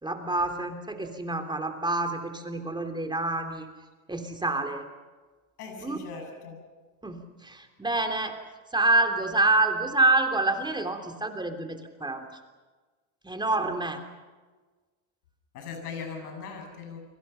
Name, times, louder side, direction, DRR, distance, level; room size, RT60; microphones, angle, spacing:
voice 1, 0.0-3.7 4.1-4.8 5.8-6.0 7.0-8.3 8.7-12.2 13.2-14.0, right 2 dB, 10° right, 5 dB, 3.2 m, -27 dB
voice 2, 5.6-6.6 15.5-17.0, left 5 dB, 90° left, 4 dB, 7.5 m, -39 dB
29.5 x 23.5 x 5.8 m, 1.3 s
supercardioid pair, 95°, 44 cm